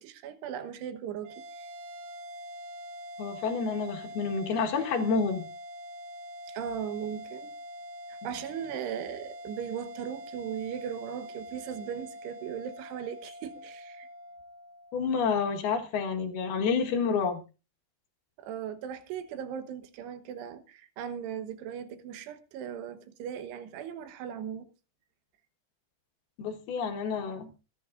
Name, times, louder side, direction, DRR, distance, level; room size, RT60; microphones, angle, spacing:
voice 1, 0.0-1.7 6.5-7.5 8.1-14.1 18.4-24.7, right 8 dB, 75° right, 3.1 m, -38 dB
sound 1, 1.2-15.8, equal, 90° right, 4.2 m, -45 dB
voice 2, 3.2-5.5 14.9-17.4 26.4-27.5, left 5 dB, 65° left, 3.2 m, -29 dB
25.5 x 11.0 x 2.5 m
omnidirectional pair, 5.2 m